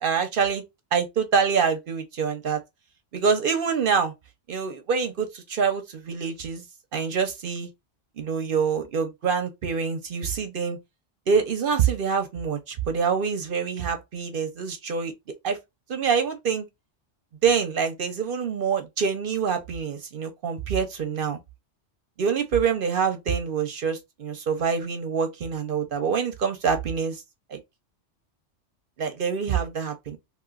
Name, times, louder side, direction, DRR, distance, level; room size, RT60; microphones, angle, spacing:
voice 1, 0.0-0.6 0.9-2.6 3.1-4.1 4.5-6.6 6.9-7.7 8.2-10.8 11.3-15.1 15.4-15.6 15.9-16.7 17.4-21.4 22.2-27.2 27.5-27.6 29.0-30.2, right 6 dB, 55° right, 0.7 m, -25 dB
2.9 x 2.9 x 2.3 m
omnidirectional pair, 1.2 m